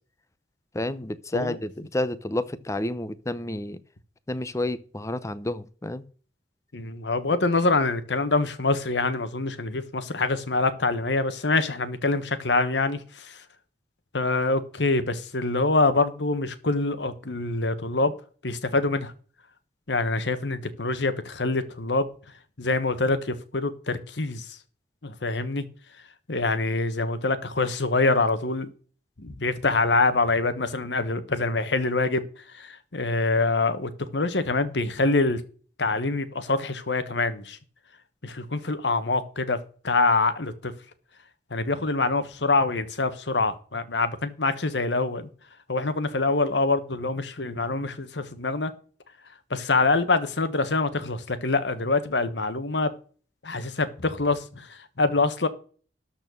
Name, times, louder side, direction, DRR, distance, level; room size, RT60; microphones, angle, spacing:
voice 1, 0.7-3.8 4.3-6.0, left 1 dB, 20° left, 0.7 m, -30 dB
voice 2, 6.7-13.4 14.1-18.1 18.4-19.1 19.9-22.1 22.6-24.6 25.0-25.6 26.3-28.7 29.2-32.2 32.5-35.4 35.8-37.6 38.2-39.6 39.8-40.7 41.5-45.3 45.7-48.7 49.5-52.9 53.4-55.5, left 3 dB, 80° left, 1.3 m, -25 dB
13.0 x 4.4 x 6.9 m
head